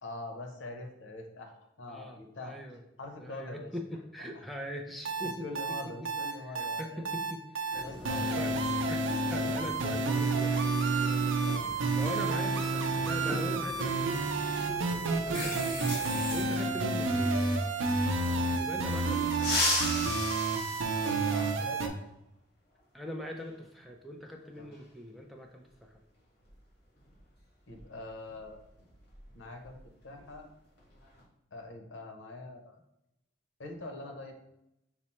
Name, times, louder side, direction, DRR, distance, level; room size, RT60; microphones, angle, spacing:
voice 1, 0.0-1.5 1.8-2.6 3.0-3.7 5.2-7.1 7.7-8.6 9.3-9.6 11.4-11.8 15.2-15.6 18.2-18.6 20.9-22.0 24.6-24.7 27.7-28.6 29.3-29.8 30.0-30.5 31.5-32.8 33.6-34.3, left 2 dB, 80° left, 4 dB, 0.8 m, -44 dB
voice 2, 1.9-2.8 3.2-5.5 6.0-7.8 8.3-8.6 8.9-10.6 11.9-14.3 16.3-17.4 18.6-19.7 22.9-25.9, equal, ahead, 1 dB, 0.3 m, -41 dB
sound 1, 5.0-21.9, right 3 dB, 85° right, 0.5 m, -30 dB
sound 2, 7.7-16.4, left 1 dB, 30° left, 1.5 m, -42 dB
sound 3, 19.3-21.7 23.4-23.5 24.7-24.8 26.4-26.6 27.0-27.2 27.7-29.8 30.1-30.4 30.8-31.2, left 2 dB, 55° left, 1.7 m, -34 dB
5.9 x 2.0 x 4.1 m, 0.84 s
head